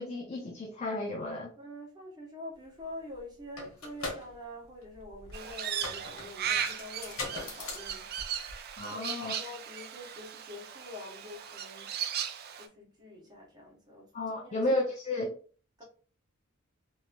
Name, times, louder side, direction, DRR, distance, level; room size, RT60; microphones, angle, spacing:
voice 1, 0.0-1.5 8.8-9.3 14.1-15.3, left 1 dB, 35° left, 0.5 m, -32 dB
voice 2, 1.6-8.1 8.4-8.6 8.9-12.0 12.5-14.7 15.8-15.9, left 1 dB, 20° right, 1.1 m, -46 dB
sound 1, 2.8-2.9 3.1-8.8, left 3 dB, 75° left, 1.2 m, -41 dB
Crow, 5.3-12.7, right 8 dB, 50° right, 0.4 m, -37 dB
3.1 x 2.7 x 2.5 m
head